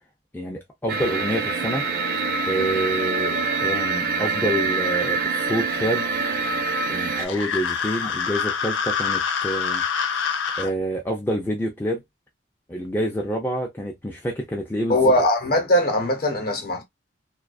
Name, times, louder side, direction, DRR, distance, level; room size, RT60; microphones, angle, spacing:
voice 1, 0.3-1.8 2.5-6.1 6.9-9.8 10.6-12.0 12.7-15.1, equal, 10° left, 0.3 m, -27 dB
sound 1, 0.9-7.3, right 4 dB, 50° right, 0.5 m, -25 dB
sound 2, 7.2-10.7, left 6 dB, 85° left, 0.5 m, -26 dB
voice 2, 14.9-16.8, left 1 dB, 50° left, 0.8 m, -20 dB
2.3 x 2.3 x 2.3 m
head